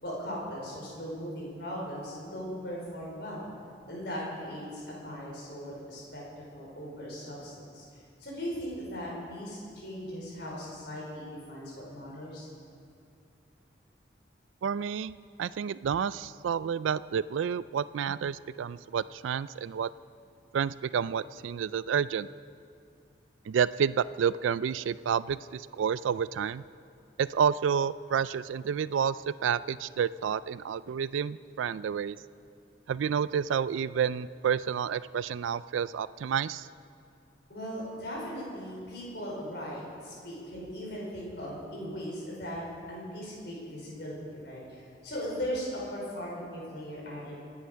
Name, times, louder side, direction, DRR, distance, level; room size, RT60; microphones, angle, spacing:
voice 1, 0.0-3.5 3.9-6.2 6.5-7.8 8.2-12.5 37.5-42.6 42.9-47.4, equal, 60° left, -4 dB, 5.2 m, -38 dB
voice 2, 14.6-15.1 15.4-19.9 20.5-22.3 23.5-26.6 27.2-32.2 32.9-36.7, right 7 dB, 90° right, 17 dB, 0.3 m, -29 dB
25.5 x 9.8 x 5.7 m, 2.5 s
head